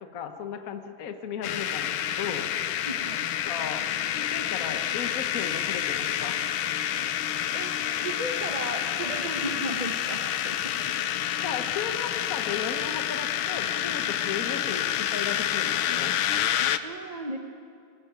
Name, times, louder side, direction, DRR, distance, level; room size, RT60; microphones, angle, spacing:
voice 1, 0.0-2.4 3.4-3.9 4.2-6.4 11.4-16.1, left 7 dB, 50° left, 6 dB, 1.5 m, -35 dB
sound 1, 1.4-16.8, left 11 dB, 90° left, 1.6 m, -28 dB
voice 2, 2.9-3.2 7.5-10.8 16.3-16.4 16.8-17.4, right 1 dB, 30° right, 3 dB, 0.8 m, -35 dB
21.0 x 19.5 x 9.0 m, 2.5 s
omnidirectional pair, 2.2 m